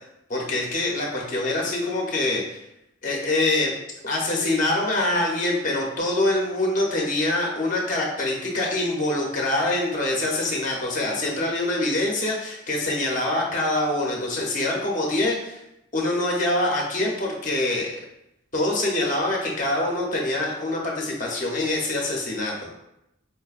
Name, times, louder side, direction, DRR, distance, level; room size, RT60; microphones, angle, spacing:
voice 1, 0.3-2.6 3.0-3.7 4.0-15.6 15.9-17.9 18.5-22.7, left 2 dB, 40° left, -2 dB, 0.7 m, -25 dB
4.5 x 2.1 x 2.4 m, 0.83 s
head